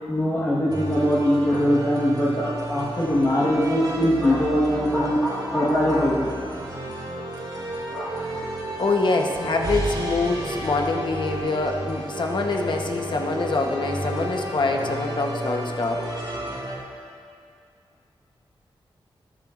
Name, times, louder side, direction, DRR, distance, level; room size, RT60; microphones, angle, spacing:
voice 1, 0.1-6.3 7.9-8.2, equal, 20° left, -7 dB, 1.3 m, -22 dB
sound 1, 0.7-16.8, right 1 dB, 50° right, 2.5 m, -32 dB
voice 2, 8.8-16.0, left 3 dB, 55° left, 2 dB, 0.9 m, -25 dB
21.0 x 7.0 x 2.5 m, 2.3 s
wide cardioid pair, 145°, 10 cm